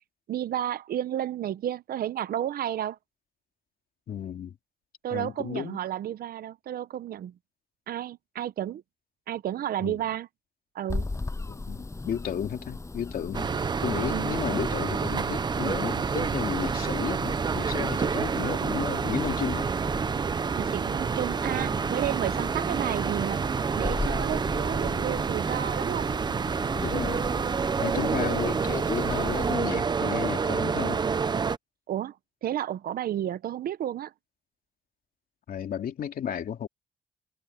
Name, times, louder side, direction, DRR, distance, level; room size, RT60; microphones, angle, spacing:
voice 1, 0.3-3.0 5.0-7.3 7.9-8.8 9.3-10.3 10.7-11.1 14.1-14.4 20.5-23.5 23.8-26.1 27.8-28.4 31.9-32.2 32.4-34.1, right 11 dB, 75° right, 0.8 m, -32 dB
voice 2, 4.1-4.5 5.1-5.8 9.8-10.0 11.5-13.5 13.8-19.7 26.8-27.3 27.8-31.0 35.5-36.7, left 9 dB, 70° left, 2.8 m, -33 dB
sound 1, 10.9-29.5, left 3 dB, 20° left, 7.2 m, -38 dB
sound 2, 13.3-31.6, right 5 dB, 30° right, 0.5 m, -28 dB
wide cardioid pair, 145°, 15 cm